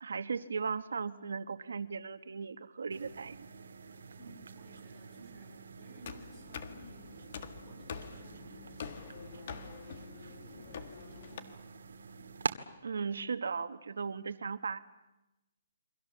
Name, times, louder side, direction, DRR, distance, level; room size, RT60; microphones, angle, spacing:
voice 1, 0.0-3.4 12.8-14.8, right 5 dB, 85° right, 10 dB, 1.3 m, -37 dB
sound 1, 2.9-12.5, right 5 dB, 70° right, 1.7 m, -45 dB
voice 2, 4.2-12.3, right 3 dB, 5° left, -4 dB, 7.1 m, -58 dB
sound 2, 6.0-11.4, left 7 dB, 35° left, 1.6 m, -46 dB
28.5 x 24.5 x 7.2 m, 0.98 s
hypercardioid pair, 180°, 0 cm